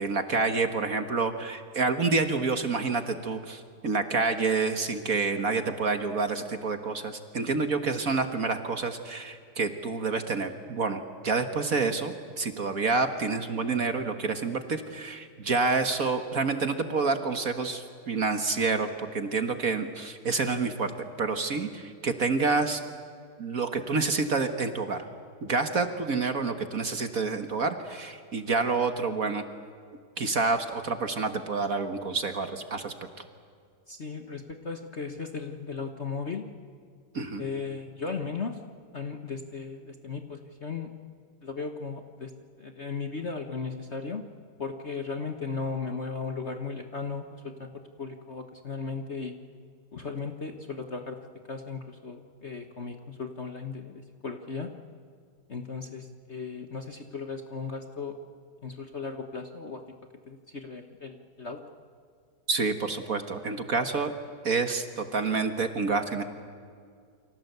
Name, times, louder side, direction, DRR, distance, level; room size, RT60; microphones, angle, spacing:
voice 1, 0.0-20.9 21.2-22.8 23.4-25.0 25.4-29.5 30.2-32.9 37.1-37.4 62.5-64.1 64.4-66.2, right 4 dB, 45° right, 7 dB, 1.7 m, -28 dB
voice 2, 33.9-36.5 37.4-38.6 38.9-41.0 41.4-42.3 42.6-44.2 44.6-47.7 48.0-49.4 49.9-54.8 55.5-58.2 58.6-59.8 60.3-61.7, left 4 dB, 35° left, 5 dB, 1.3 m, -36 dB
29.0 x 25.0 x 8.1 m, 2.2 s
omnidirectional pair, 2.3 m